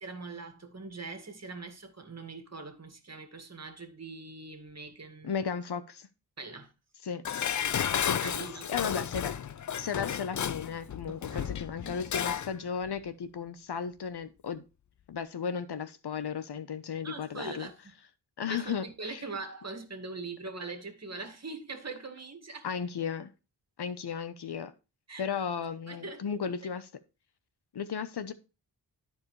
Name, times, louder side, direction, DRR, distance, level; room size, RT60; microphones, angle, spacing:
voice 1, 0.0-5.3 6.4-6.7 8.2-8.7 11.1-11.6 17.0-17.9 18.5-22.7 25.1-25.2 25.9-26.5, right 3 dB, 35° right, 2.0 m, -42 dB
voice 2, 5.2-6.1 7.0-7.2 8.0-8.3 8.7-9.3 9.8-14.6 15.1-17.7 18.4-19.2 22.6-23.3 23.8-24.7 25.2-26.9 27.7-28.3, left 6 dB, 65° left, 1.0 m, -35 dB
Dishes pots and pans, 7.2-12.5 12.9-13.0, left 9 dB, 45° left, 0.5 m, -32 dB
13.5 x 4.7 x 3.2 m
cardioid pair, 60°, 43 cm